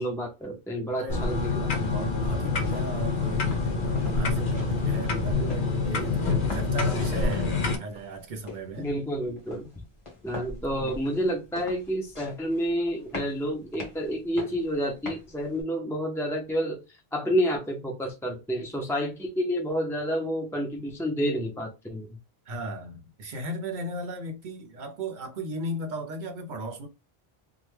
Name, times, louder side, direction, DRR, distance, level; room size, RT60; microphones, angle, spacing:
voice 1, 0.0-1.7 8.8-9.7 10.2-16.8 17.1-22.2, equal, 5° left, 0.4 m, -29 dB
voice 2, 0.9-1.3 1.8-8.9 10.7-10.9 22.5-26.9, right 1 dB, 50° right, 0.8 m, -36 dB
sound 1, 1.1-7.8, left 4 dB, 55° left, 0.8 m, -26 dB
sound 2, 1.6-15.6, left 2 dB, 30° left, 1.1 m, -44 dB
3.2 x 2.1 x 3.2 m
omnidirectional pair, 1.1 m